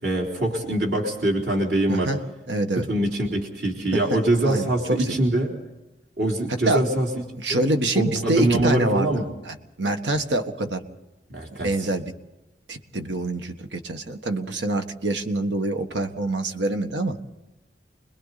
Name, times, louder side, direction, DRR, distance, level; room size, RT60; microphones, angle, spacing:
voice 1, 0.0-2.1 2.8-5.5 6.2-7.1 7.5-7.6 7.9-9.2 11.3-11.7, right 1 dB, 65° right, -1 dB, 3.8 m, -23 dB
voice 2, 2.5-2.9 4.4-5.1 6.6-6.8 7.4-9.1 9.4-10.8 11.6-12.0 12.7-17.2, right 2 dB, 85° right, 6 dB, 1.6 m, -25 dB
29.5 x 21.5 x 4.2 m, 0.95 s
head